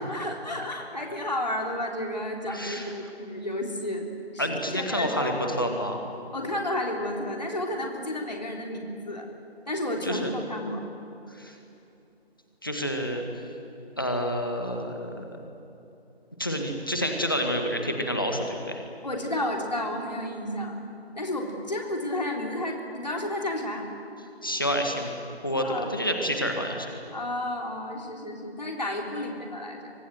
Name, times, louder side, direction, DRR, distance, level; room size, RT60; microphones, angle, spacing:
voice 1, 0.0-4.1 4.3-5.5 6.3-9.3 9.7-10.8 19.0-20.9 21.2-23.9 25.6-25.9 27.1-29.9, left 1 dB, 40° left, 1 dB, 3.7 m, -32 dB
voice 2, 2.5-2.9 4.4-6.0 10.0-10.3 11.4-11.5 12.6-13.2 14.0-15.4 16.4-18.8 24.4-25.1 25.4-26.9, equal, 20° left, 3 dB, 1.8 m, -28 dB
30.0 x 25.0 x 7.9 m, 2.8 s
figure-of-eight pair, 170°, 32 cm